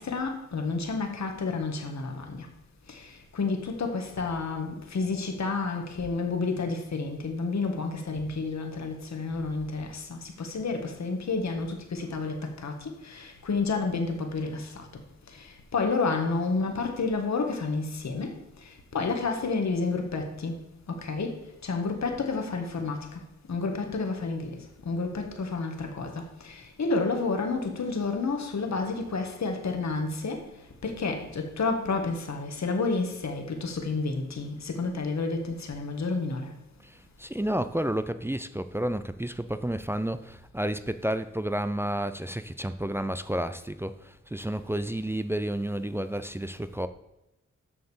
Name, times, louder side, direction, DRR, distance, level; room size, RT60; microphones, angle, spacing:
voice 1, 0.0-2.5 2.9-3.0 3.3-12.8 13.1-14.8 15.7-18.3 18.9-20.5 20.9-21.3 21.6-23.0 23.5-24.5 24.9-30.4 30.8-36.5, left 4 dB, 65° left, 1.7 m, -30 dB
voice 2, 37.2-46.9, right 1 dB, 10° right, 0.5 m, -31 dB
7.6 x 6.6 x 7.2 m
cardioid pair, 80°, 30 cm